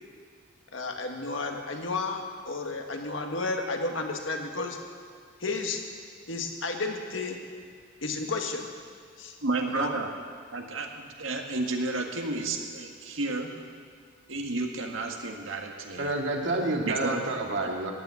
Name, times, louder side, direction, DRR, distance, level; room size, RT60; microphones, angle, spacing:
voice 1, 0.7-4.8 5.4-5.8 6.3-7.4 8.0-8.7 9.2-9.4 9.7-9.9, left 3 dB, 70° left, 3 dB, 1.7 m, -32 dB
voice 2, 9.4-10.1 10.5-13.5 14.3-16.1 16.9-17.2, right 2 dB, 85° right, 3 dB, 1.7 m, -31 dB
voice 3, 16.0-17.9, right 2 dB, 65° right, 1 dB, 2.1 m, -29 dB
14.5 x 8.9 x 9.5 m, 2.1 s
head